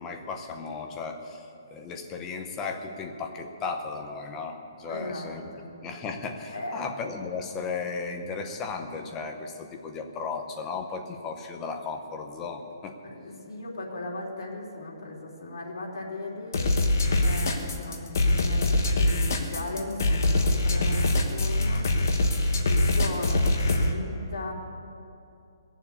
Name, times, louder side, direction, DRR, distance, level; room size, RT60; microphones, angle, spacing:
voice 1, 0.0-5.5 5.8-13.0, left 4 dB, 10° left, 4 dB, 0.7 m, -35 dB
voice 2, 4.9-5.7 6.5-6.8 13.0-21.8 22.1-22.2 22.6-24.5, left 2 dB, 85° left, -2 dB, 3.3 m, -37 dB
sound 1, 16.5-23.9, left 2 dB, 45° left, 1.3 m, -23 dB
18.5 x 7.2 x 8.3 m, 2.6 s
hypercardioid pair, 180°, 2 cm